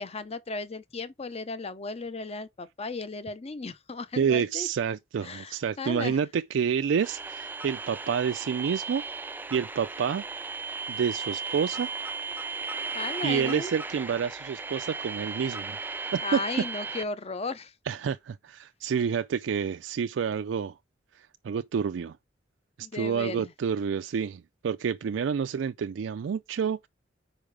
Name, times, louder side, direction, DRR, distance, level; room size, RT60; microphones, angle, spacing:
voice 1, 0.0-4.7 5.2-6.2 12.9-13.7 16.2-17.7 22.8-23.5, left 3 dB, 35° left, 0.7 m, -35 dB
voice 2, 4.2-9.0 9.5-10.3 10.9-11.9 13.2-15.8 16.1-16.4 16.9-17.0 17.9-20.8 21.1-22.2 22.8-26.9, right 7 dB, 85° right, 0.4 m, -29 dB
sound 1, 7.0-17.0, right 4 dB, 10° right, 0.3 m, -36 dB
5.1 x 4.8 x 4.6 m
head